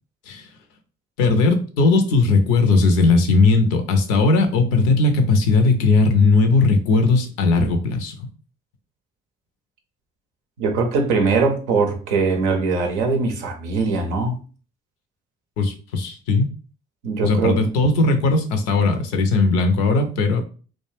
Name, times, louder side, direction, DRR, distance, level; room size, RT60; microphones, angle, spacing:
voice 1, 1.2-8.3 15.6-16.5 17.2-20.4, left 3 dB, 85° left, 0.5 m, -18 dB
voice 2, 10.6-14.4 17.0-17.7, right 4 dB, 90° right, 0.5 m, -21 dB
2.3 x 2.1 x 3.1 m
hypercardioid pair, 40°, 33 cm